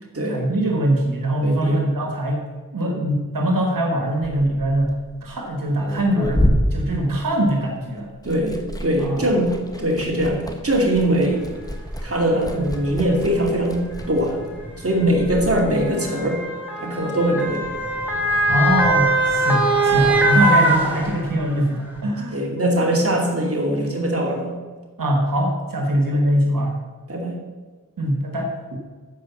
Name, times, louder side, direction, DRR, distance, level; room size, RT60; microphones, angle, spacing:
voice 1, 0.3-2.4 2.7-4.9 5.2-8.1 9.0-9.3 18.5-22.4 25.0-26.7 28.0-28.8, right 1 dB, 90° right, 2 dB, 1.6 m, -22 dB
voice 2, 1.4-1.8 2.8-3.1 6.9-7.1 8.2-9.5 9.8-11.5 12.0-13.8 14.1-14.4 14.8-16.4 16.8-17.6 22.3-24.5 26.1-26.2 27.1-27.4, right 1 dB, 45° right, 0 dB, 2.6 m, -21 dB
Liquid, 4.1-7.8 8.1-15.6, equal, 10° left, 1.5 m, -28 dB
Motor vehicle (road) / Siren, 11.6-11.7 12.6-12.8 13.9-21.5 21.9-22.0, right 1 dB, 5° right, 3.1 m, -21 dB
12.5 x 5.0 x 7.1 m, 1.4 s
wide cardioid pair, 55°, 33 cm